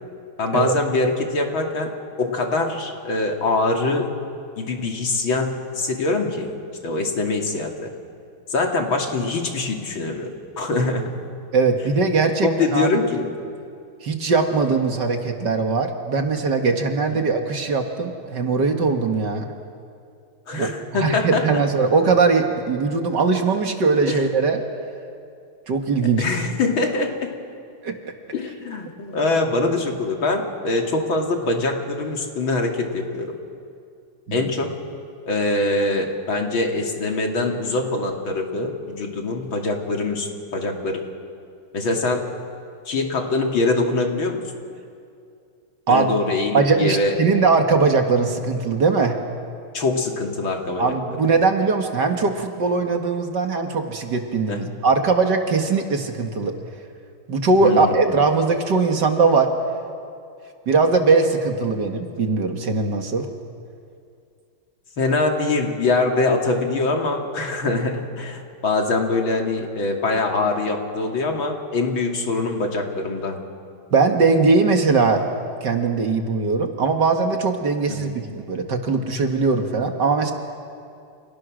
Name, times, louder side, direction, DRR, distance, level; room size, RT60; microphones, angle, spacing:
voice 1, 0.4-1.9 2.2-4.1 4.6-6.5 6.8-7.9 8.5-11.1 12.4-13.3 17.1-17.3 20.5-21.6 24.1-24.2 26.2-27.3 28.3-33.3 34.3-34.7 35.3-41.0 41.7-42.2 42.9-44.4 45.9-47.2 49.7-51.2 54.5-54.7 57.6-58.2 65.0-73.4 77.9-78.1, left 3 dB, 70° left, 2 dB, 3.4 m, -23 dB
voice 2, 11.5-13.0 14.0-19.5 20.6-20.7 21.0-24.6 25.7-26.2 27.8-28.0 34.3-34.5 45.9-46.1 46.5-49.2 50.8-56.5 57.3-59.5 60.7-63.3 73.9-75.2 75.6-80.3, right 4 dB, 55° right, 4 dB, 2.3 m, -20 dB
29.5 x 29.0 x 6.4 m, 2.4 s
omnidirectional pair, 2.3 m